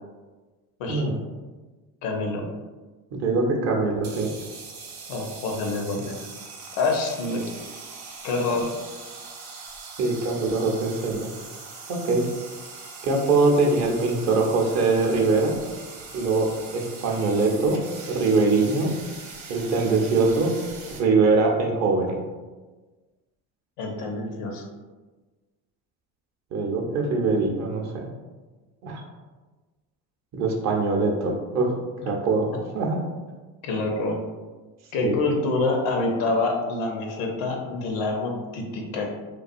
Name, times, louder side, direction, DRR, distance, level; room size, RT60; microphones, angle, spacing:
voice 1, 0.9-1.2 3.1-4.3 10.0-11.3 11.9-12.3 13.0-15.5 16.1-17.8 18.1-18.9 19.5-20.5 21.0-22.2 26.5-27.9 28.8-29.0 30.3-31.7 32.0-32.5 32.7-33.0 35.0-35.2, right 3 dB, 40° right, 0 dB, 0.6 m, -22 dB
voice 2, 2.0-2.5 5.1-6.2 6.8-7.4 8.2-8.7 23.8-24.7 33.6-34.2 34.9-39.1, left 3 dB, 80° left, 1 dB, 0.6 m, -26 dB
sound 1, 3.9-21.0, right 4 dB, 90° right, 0.6 m, -41 dB
2.3 x 2.2 x 2.5 m, 1.3 s
hypercardioid pair, 70°, 44 cm